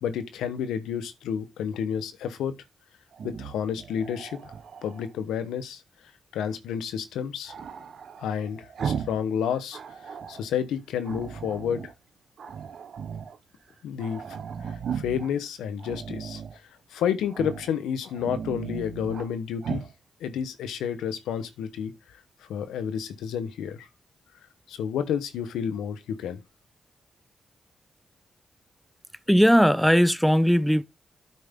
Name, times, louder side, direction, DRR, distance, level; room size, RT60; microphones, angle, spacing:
voice 1, 0.0-2.5 3.2-4.4 4.8-5.8 6.3-7.5 8.2-9.8 10.3-11.9 13.8-14.2 14.7-16.4 16.9-19.8 20.2-21.9 22.5-23.9 24.7-26.4, left 8 dB, 90° left, 1.0 m, -30 dB
Growling, 3.1-5.1 7.5-9.3 9.5-10.4 11.0-11.9 12.4-13.4 13.7-13.8 14.0-15.3 15.8-16.6 17.3-17.7 18.1-19.3 19.6-19.9, right 7 dB, 70° right, 1.0 m, -36 dB
voice 2, 29.3-30.8, equal, ahead, 0.6 m, -18 dB
9.3 x 5.5 x 3.6 m
supercardioid pair, 45°, 0 cm